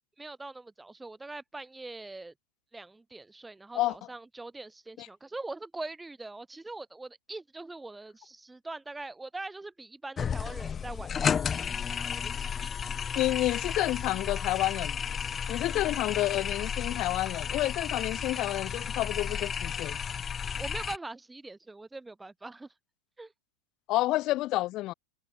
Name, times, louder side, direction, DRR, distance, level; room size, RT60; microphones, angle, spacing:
voice 1, 0.0-2.3 2.7-13.0 15.7-15.9 20.6-22.7 23.2-23.3, right 2 dB, 10° right, 0.8 m, -43 dB
sound 1, 10.2-21.0, left 7 dB, 20° left, 1.4 m, -33 dB
voice 2, 13.2-15.0 15.5-20.0 23.9-24.9, left 17 dB, 35° left, 0.5 m, -29 dB
figure-of-eight pair, 90°, 0 cm